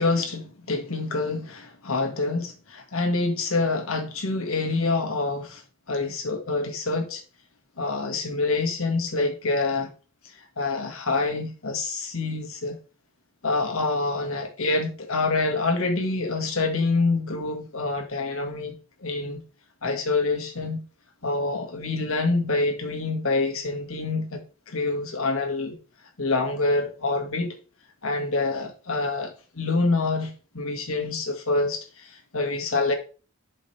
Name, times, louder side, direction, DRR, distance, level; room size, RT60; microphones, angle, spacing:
voice 1, 0.0-5.6 5.9-7.2 7.8-9.9 10.2-12.8 13.4-19.4 19.8-20.8 21.2-25.8 26.2-27.6 28.0-32.9, left 3 dB, 80° left, 1.8 m, -26 dB
11.5 x 5.2 x 3.2 m
head